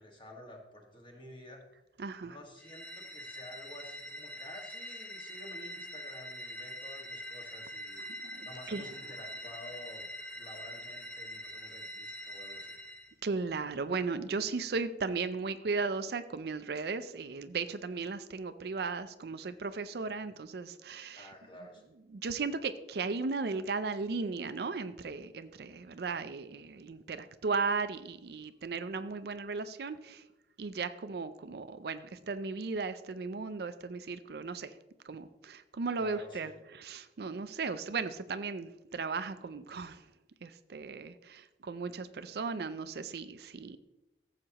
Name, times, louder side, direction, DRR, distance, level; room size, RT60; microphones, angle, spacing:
voice 1, 0.0-1.6 2.2-8.1 8.4-10.1 10.4-12.8 21.1-21.9 35.9-36.6, left 1 dB, 25° left, 1 dB, 1.6 m, -51 dB
voice 2, 2.0-2.4 8.0-8.9 13.2-21.3 22.1-30.2 30.6-34.7 35.0-40.1 40.4-43.8, right 4 dB, 60° right, 12 dB, 0.4 m, -36 dB
sound 1, 2.6-13.1, equal, 5° left, 0.9 m, -44 dB
14.5 x 7.4 x 2.9 m, 0.98 s
head